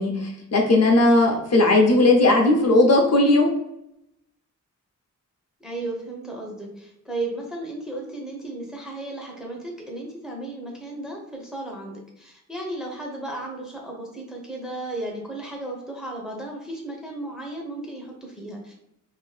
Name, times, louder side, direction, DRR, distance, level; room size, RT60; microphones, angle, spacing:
voice 1, 0.0-3.5, left 2 dB, 55° left, 1 dB, 0.6 m, -17 dB
voice 2, 5.6-18.7, right 2 dB, ahead, -1 dB, 0.6 m, -34 dB
2.8 x 2.5 x 3.2 m, 0.83 s
wide cardioid pair, 165°, 31 cm